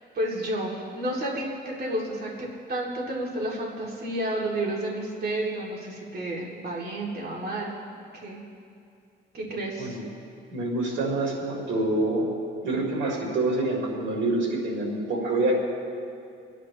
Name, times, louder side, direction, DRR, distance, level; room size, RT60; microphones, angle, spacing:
voice 1, 0.0-1.4 1.8-7.7 8.2-8.4 9.3-10.0, right 1 dB, 55° right, -4 dB, 3.1 m, -31 dB
voice 2, 10.5-12.3 12.6-15.5, right 2 dB, 75° right, -2 dB, 3.8 m, -26 dB
28.5 x 10.0 x 3.2 m, 2.5 s
cardioid pair, 90°, 20 cm